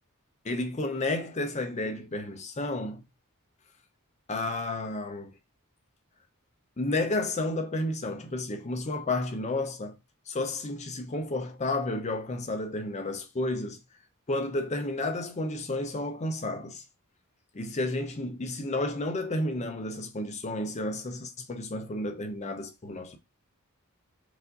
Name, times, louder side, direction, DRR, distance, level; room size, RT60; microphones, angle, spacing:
voice 1, 0.4-3.0 4.3-5.3 6.8-9.9 10.3-13.8 14.3-16.8 17.5-23.2, left 2 dB, 30° left, 0.6 m, -31 dB
4.8 x 2.6 x 3.8 m
head